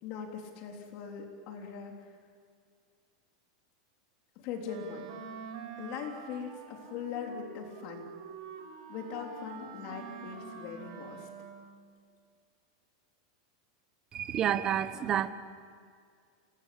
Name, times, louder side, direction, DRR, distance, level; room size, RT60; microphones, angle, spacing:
voice 1, 0.0-2.1 4.3-5.1 5.8-8.1 8.9-11.3, left 6 dB, 45° left, 2 dB, 3.5 m, -41 dB
Wind instrument woodwind instrument, 4.6-11.8, right 5 dB, 65° right, 5.2 m, -46 dB
voice 2, 14.1-15.3, right 10 dB, 25° right, 12 dB, 1.1 m, -29 dB
28.5 x 19.5 x 8.6 m, 2.1 s
supercardioid pair, 165°, 3 cm